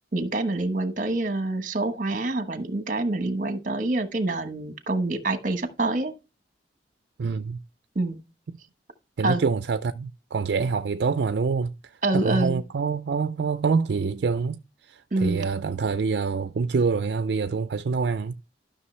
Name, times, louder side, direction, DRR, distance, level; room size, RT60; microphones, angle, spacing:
voice 1, 0.1-6.1 7.9-8.2 9.2-9.4 12.0-12.6 15.1-15.5, right 2 dB, 45° right, 1.1 m, -26 dB
voice 2, 7.2-7.6 9.2-18.3, right 5 dB, 65° right, 0.4 m, -26 dB
12.5 x 6.1 x 3.2 m
head